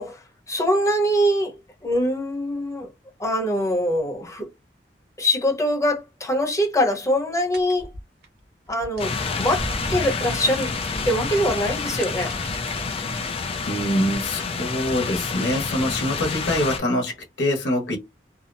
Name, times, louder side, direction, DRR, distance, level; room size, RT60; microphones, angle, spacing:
voice 1, 0.0-2.9 3.2-4.5 5.2-7.9 8.7-10.7 11.0-12.3, equal, 20° left, 0.9 m, -23 dB
sound 1, 7.5-13.3, right 1 dB, 65° right, 0.9 m, -37 dB
sound 2, 9.0-16.8, left 4 dB, 35° left, 0.4 m, -28 dB
voice 2, 13.7-18.0, left 1 dB, 80° left, 1.0 m, -24 dB
2.7 x 2.0 x 2.5 m
head